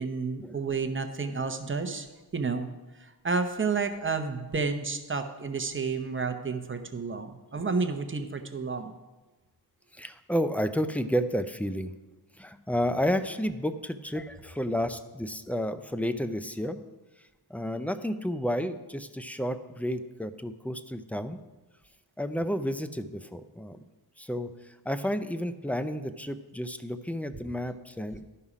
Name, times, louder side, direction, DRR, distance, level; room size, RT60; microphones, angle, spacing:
voice 1, 0.0-2.1 2.3-2.7 3.2-8.9, right 4 dB, 30° right, 7 dB, 0.8 m, -30 dB
voice 2, 9.9-11.9 12.4-16.8 17.5-21.4 22.2-23.8 24.2-28.2, equal, 5° left, 11 dB, 0.4 m, -31 dB
12.5 x 5.6 x 5.0 m, 1.2 s
wide cardioid pair, 95°, 41 cm